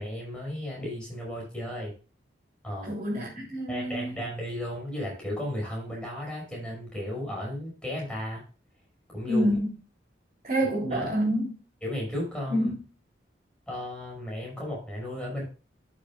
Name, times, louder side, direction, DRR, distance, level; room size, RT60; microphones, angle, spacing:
voice 1, 0.0-1.9 2.6-2.9 3.7-8.5 9.1-9.5 10.9-11.1 11.8-12.7 13.7-15.4, left 1 dB, 5° left, 5.6 m, -34 dB
voice 2, 2.8-4.2 9.2-9.7 10.4-11.6 12.5-12.8, equal, 40° right, 3.7 m, -27 dB
13.5 x 7.5 x 2.3 m
head